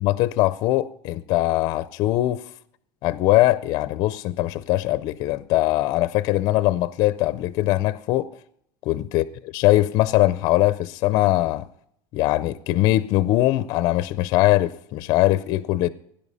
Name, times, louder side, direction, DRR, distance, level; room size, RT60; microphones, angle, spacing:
voice 1, 0.0-2.5 3.0-8.3 8.9-9.2 9.5-11.7 12.1-15.9, left 16 dB, 40° left, 0.4 m, -21 dB
17.5 x 10.5 x 5.5 m
cardioid pair, 180°, 10 cm